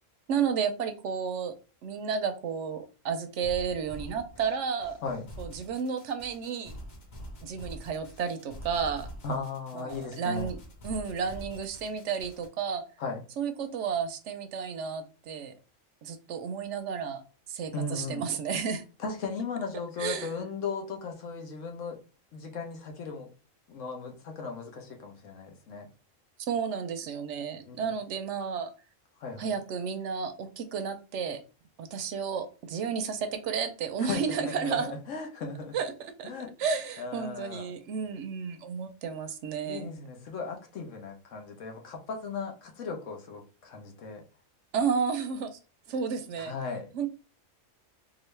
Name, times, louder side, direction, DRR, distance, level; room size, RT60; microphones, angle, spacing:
voice 1, 0.3-1.5 1.8-5.0 5.4-6.7 7.4-9.1 9.7-10.6 10.8-12.8 13.4-15.5 16.0-17.2 17.5-18.8 20.0-20.3 26.4-28.7 29.4-31.4 31.8-34.9 35.7-36.3 36.6-39.9 44.7-45.6 45.9-46.5 46.9-47.1, right 6 dB, 70° right, 0.9 m, -32 dB
sound 1, 3.4-12.5, equal, 90° left, 1.5 m, -45 dB
voice 2, 9.2-10.5 13.0-13.2 17.7-18.3 19.0-22.0 22.3-23.3 23.7-25.9 27.6-27.9 29.2-29.5 34.1-35.8 36.2-36.5 37.0-37.7 39.7-44.2 46.4-46.9, left 4 dB, 70° left, 1.2 m, -37 dB
3.8 x 2.5 x 3.2 m
omnidirectional pair, 1.3 m